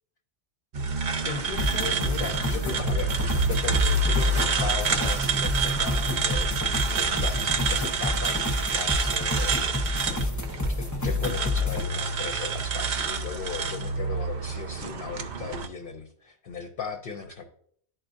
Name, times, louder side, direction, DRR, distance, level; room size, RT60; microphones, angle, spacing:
sound 1, 0.7-15.7, right 3 dB, 50° right, 0.6 m, -28 dB
voice 1, 1.2-10.1 10.4-17.4, left 5 dB, 55° left, 4 dB, 0.8 m, -37 dB
sound 2, 1.5-11.8, left 1 dB, 20° left, 0.6 m, -30 dB
11.5 x 4.4 x 2.6 m, 0.63 s
omnidirectional pair, 1.2 m